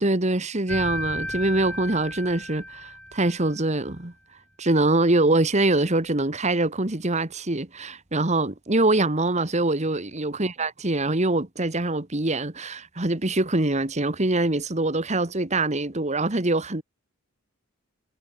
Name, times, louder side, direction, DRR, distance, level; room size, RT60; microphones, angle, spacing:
voice 1, 0.0-4.1 4.6-16.8, right 2 dB, 30° right, 1.6 m, -24 dB
sound 1, 0.7-3.6, left 1 dB, 5° left, 6.5 m, -34 dB
head